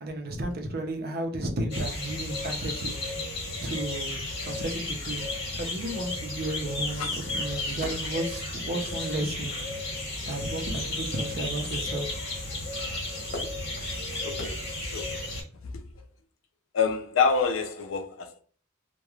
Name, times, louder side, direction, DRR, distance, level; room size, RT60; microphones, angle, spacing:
voice 1, 0.0-3.0 3.6-5.2 5.5-9.5 10.3-12.1, right 1 dB, 50° right, 0.6 m, -33 dB
sound 1, 1.7-15.4, left 2 dB, 55° left, 1.1 m, -33 dB
voice 2, 14.2-14.6 14.9-15.1 15.6-16.1 16.7-18.4, left 5 dB, 90° left, 0.4 m, -27 dB
3.0 x 2.2 x 2.3 m
head